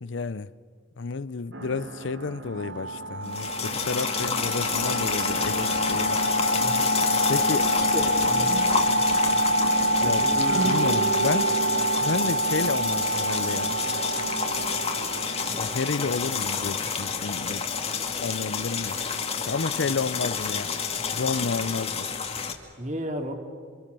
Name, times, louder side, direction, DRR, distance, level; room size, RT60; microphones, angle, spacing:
voice 1, 0.0-0.5 1.0-6.2 7.3-7.8 10.0-11.6 12.0-13.7 15.5-17.7 18.2-19.0 19.3-20.7 21.1-22.1, left 4 dB, 70° left, 0.6 m, -31 dB
sound 1, 1.5-18.2, right 4 dB, 65° right, 1.3 m, -39 dB
sound 2, 2.6-16.0, equal, 90° right, 2.3 m, -26 dB
sound 3, 3.2-22.5, left 6 dB, 30° left, 1.9 m, -30 dB
voice 2, 6.6-6.9 7.3-7.4 7.9-8.5 10.0-10.3 22.8-23.3, equal, 35° right, 2.8 m, -33 dB
29.0 x 25.0 x 6.9 m
head